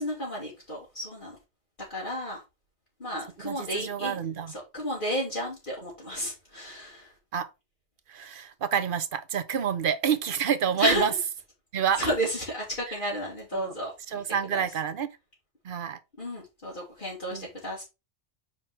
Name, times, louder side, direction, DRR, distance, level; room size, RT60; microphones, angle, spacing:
voice 1, 0.0-1.4 1.9-2.4 3.0-4.2 4.7-7.1 10.8-11.1 12.0-13.9 14.5-14.6 16.2-17.8, equal, 45° left, 2.2 m, -32 dB
voice 2, 3.4-4.5 7.3-7.5 8.1-11.1 11.7-12.0 12.9-13.0 13.5-13.7 14.1-15.1 15.6-16.0 17.3-17.5, right 7 dB, 55° right, 0.9 m, -28 dB
6.0 x 4.5 x 4.7 m
omnidirectional pair, 1.2 m